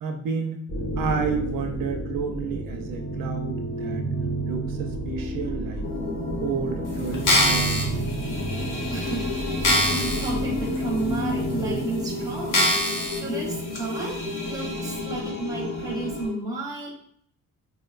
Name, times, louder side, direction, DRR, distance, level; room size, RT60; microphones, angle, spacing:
voice 1, 0.0-0.6 1.0-4.0 4.4-5.9 6.4-7.9, right 6 dB, 85° right, 4 dB, 0.6 m, -31 dB
sound 1, 0.7-12.7, right 1 dB, 30° left, 0.8 m, -30 dB
sound 2, 5.8-16.3, left 2 dB, 85° left, 1.1 m, -32 dB
sound 3, 7.1-7.8 8.5-8.6 9.1-9.2 9.6-10.3 10.8-10.9 11.6-11.7 12.5-13.2 13.7-13.8, left 1 dB, 65° left, 0.9 m, -22 dB
voice 2, 8.9-16.9, right 2 dB, 10° right, -3 dB, 0.7 m, -33 dB
4.1 x 2.1 x 2.4 m, 0.65 s
wide cardioid pair, 180°, 33 cm